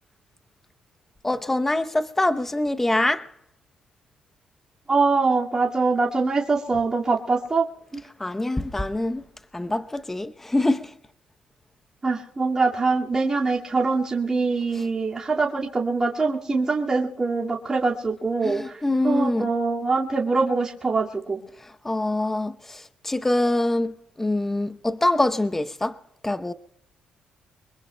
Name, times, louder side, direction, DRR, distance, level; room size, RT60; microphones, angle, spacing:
voice 1, 1.2-3.3 8.2-9.2 9.5-10.9 14.7-14.9 18.4-19.5 21.6-26.0 26.2-26.5, left 1 dB, 10° left, 0.8 m, -25 dB
voice 2, 4.9-7.7 7.9-8.0 12.0-18.8 19.0-21.4, right 4 dB, 25° right, 2.1 m, -23 dB
24.0 x 22.0 x 2.2 m
cardioid pair, 95°, 3 cm